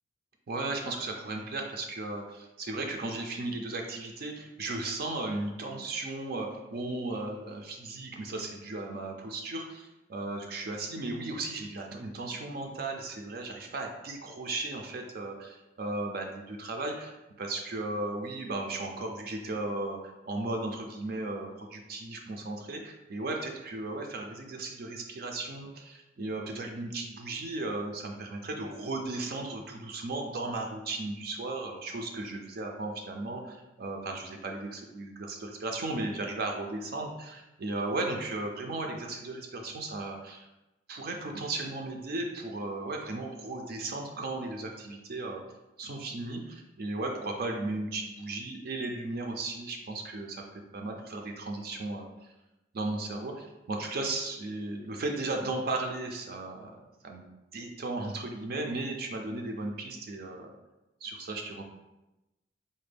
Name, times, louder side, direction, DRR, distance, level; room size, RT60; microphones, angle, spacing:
voice 1, 0.5-40.5 40.9-45.4 45.8-50.4 50.7-52.1 52.7-57.2 57.5-60.5 61.0-61.6, right 2 dB, 50° right, 2 dB, 0.4 m, -36 dB
4.1 x 2.2 x 3.3 m, 0.98 s
head